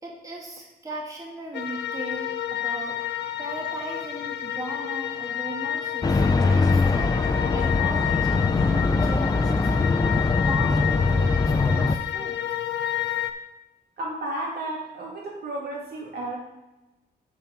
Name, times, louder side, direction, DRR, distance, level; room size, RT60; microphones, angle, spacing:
voice 1, 0.0-8.6 8.9-12.6, right 1 dB, 20° right, -2 dB, 1.6 m, -38 dB
sound 1, 1.5-13.3, left 11 dB, 85° left, 0.6 m, -30 dB
sound 2, 6.0-12.0, left 3 dB, 20° left, 0.5 m, -22 dB
voice 2, 14.0-16.4, right 1 dB, 70° right, -3 dB, 2.7 m, -32 dB
7.5 x 6.3 x 4.6 m, 1.1 s
wide cardioid pair, 135°, 17 cm